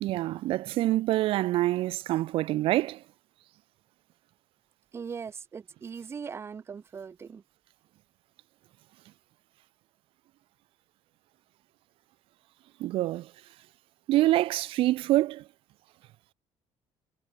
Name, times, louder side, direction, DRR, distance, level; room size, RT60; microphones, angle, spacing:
voice 1, 0.0-3.0 12.8-13.3 14.1-15.4, right 16 dB, 55° right, 0.5 m, -26 dB
voice 2, 4.9-7.4, right 6 dB, 25° right, 3.3 m, -40 dB
cardioid pair, 180°, 11 cm